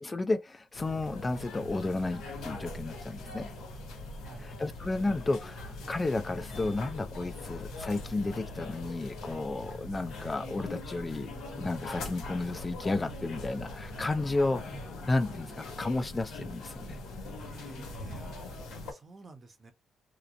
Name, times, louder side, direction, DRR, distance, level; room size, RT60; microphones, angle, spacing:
voice 1, 0.0-3.5 4.4-14.6 15.1-17.0, left 2 dB, 25° left, 0.4 m, -32 dB
sound 1, 0.7-18.9, left 2 dB, 85° left, 1.3 m, -42 dB
voice 2, 17.4-19.7, right 3 dB, 35° right, 0.7 m, -53 dB
2.9 x 2.0 x 2.5 m
cardioid pair, 90°, 0 cm